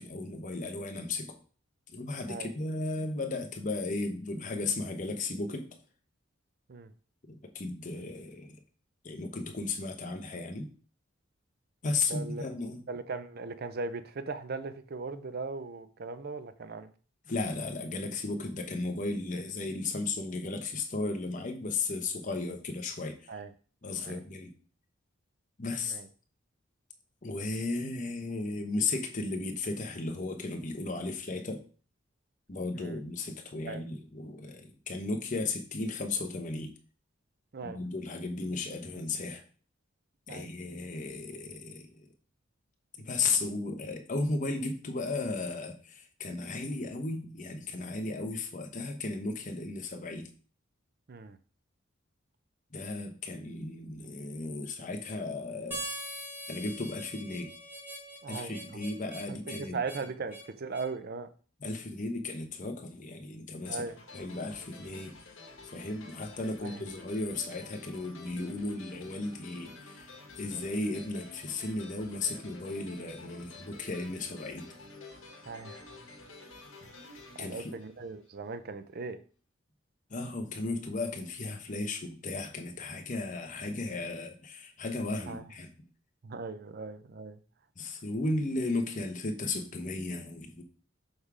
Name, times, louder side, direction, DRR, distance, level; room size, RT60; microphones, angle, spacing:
voice 1, 0.0-1.4 1.9-5.7 7.3-8.6 9.0-10.7 11.8-12.8 17.3-23.3 23.8-24.5 25.6-26.0 27.2-31.6 32.5-36.7 37.6-39.4 40.3-42.1 43.0-50.3 52.7-55.8 56.5-57.5 58.3-59.8 61.6-63.8 64.1-65.1 65.6-74.7 77.4-77.8 80.1-85.7 87.8-90.6, left 3 dB, 40° left, 0.9 m, -35 dB
voice 2, 12.1-12.4 12.9-16.9 23.3-23.5 24.0-24.2 25.9-26.1 32.8-33.0 33.7-33.8 37.5-37.8 40.3-40.5 51.1-51.4 58.2-58.6 59.3-61.3 63.7-63.9 66.6-66.8 75.5-75.9 76.8-76.9 77.4-79.2 85.3-85.4 86.2-87.4, right 4 dB, 50° right, 0.5 m, -38 dB
Harmonica, 55.7-60.9, right 1 dB, 10° right, 1.8 m, -42 dB
sound 1, 63.6-78.5, left 3 dB, 80° left, 1.4 m, -50 dB
6.4 x 3.5 x 4.8 m
head